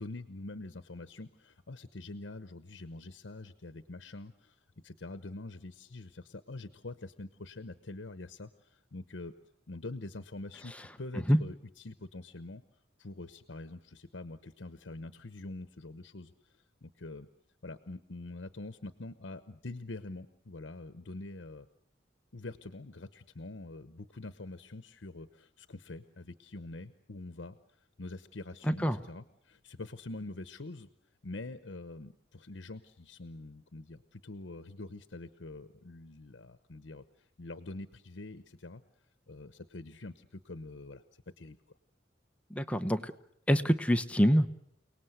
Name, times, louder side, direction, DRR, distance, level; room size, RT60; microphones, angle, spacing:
voice 1, 0.0-9.3 9.7-12.6 13.0-17.3 17.6-21.7 22.3-30.9 31.2-38.8 39.3-41.0 41.4-41.6, left 2 dB, 75° left, 11 dB, 1.0 m, -45 dB
voice 2, 28.7-29.0 42.5-43.1 43.5-44.5, equal, 5° left, 9 dB, 0.9 m, -25 dB
29.5 x 19.0 x 8.0 m, 0.75 s
head